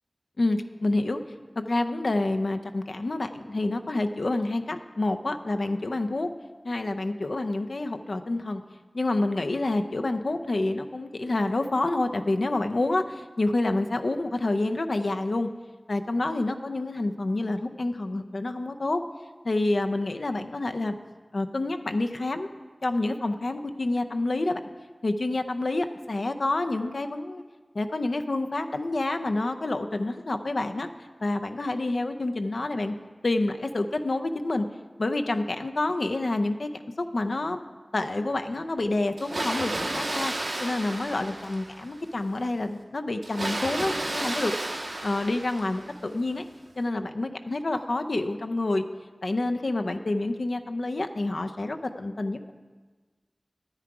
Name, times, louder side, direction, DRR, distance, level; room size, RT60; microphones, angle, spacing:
voice 1, 0.4-1.2 1.6-6.3 6.6-8.6 8.9-15.5 15.9-19.0 19.4-20.9 21.3-22.5 22.8-24.6 25.0-27.4 27.7-30.9 31.2-32.9 33.2-34.7 35.0-36.7 37.0-37.6 37.9-40.3 40.6-44.5 45.0-46.4 46.8-48.8 49.2-52.5, left 2 dB, 75° left, 7 dB, 0.6 m, -28 dB
Water, 39.2-42.0 43.2-46.0, right 2 dB, 85° right, 1.3 m, -32 dB
10.0 x 9.7 x 4.8 m, 1.4 s
wide cardioid pair, 45°, 0 cm